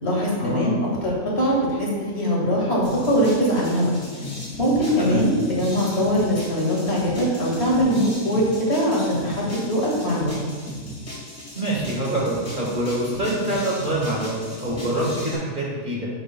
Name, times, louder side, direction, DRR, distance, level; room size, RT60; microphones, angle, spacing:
voice 1, 0.0-0.7 1.0-1.9 2.1-3.9 4.6-10.3, equal, 50° left, -4 dB, 2.1 m, -22 dB
sound 1, 2.8-15.4, left 2 dB, 65° left, 2.6 m, -36 dB
voice 2, 11.5-16.1, right 1 dB, 40° right, -4 dB, 1.6 m, -25 dB
10.0 x 7.0 x 2.3 m, 1.5 s
omnidirectional pair, 1.4 m